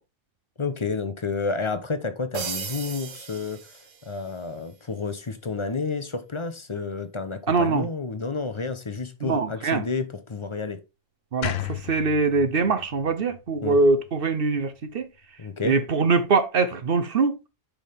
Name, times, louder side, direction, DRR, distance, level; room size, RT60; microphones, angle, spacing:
voice 1, 0.6-10.8 13.6-13.8 15.4-15.8, left 4 dB, 30° left, 0.6 m, -30 dB
sound 1, 2.3-4.4, right 6 dB, 65° right, 1.3 m, -36 dB
voice 2, 7.5-7.9 9.2-9.8 11.3-15.1 15.6-17.4, right 4 dB, 50° right, 0.8 m, -23 dB
sound 2, 11.4-14.6, left 12 dB, 75° left, 1.1 m, -35 dB
6.7 x 5.7 x 3.4 m
omnidirectional pair, 1.4 m